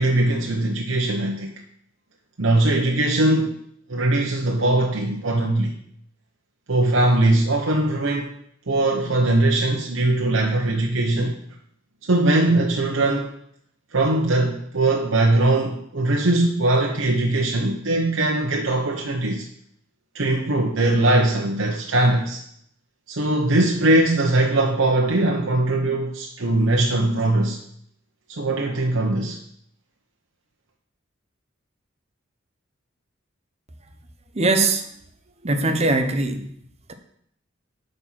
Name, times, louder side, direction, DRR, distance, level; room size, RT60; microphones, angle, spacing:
voice 1, 0.0-1.5 2.4-3.6 3.9-5.7 6.7-8.3 8.7-11.4 12.0-13.3 13.9-19.4 20.1-22.4 23.1-27.6 28.3-29.4, right 2 dB, 85° right, 0 dB, 1.0 m, -20 dB
voice 2, 34.3-34.8 35.4-36.5, right 2 dB, 35° right, 7 dB, 0.9 m, -21 dB
9.2 x 4.4 x 5.9 m, 0.69 s
head